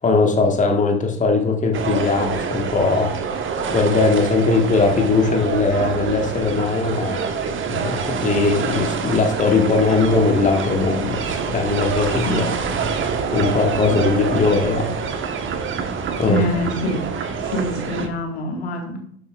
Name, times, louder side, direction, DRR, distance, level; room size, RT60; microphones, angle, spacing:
voice 1, 0.0-3.1 3.7-7.2 7.7-12.4 13.3-14.9 16.2-16.4, left 3 dB, 25° left, 2 dB, 1.5 m, -19 dB
sound 1, 1.7-18.1, right 5 dB, 40° right, 1.3 m, -26 dB
voice 2, 16.2-17.1 17.4-19.0, equal, 75° left, 2 dB, 1.9 m, -25 dB
12.0 x 7.0 x 2.4 m, 0.65 s
figure-of-eight pair, 55°, 32 cm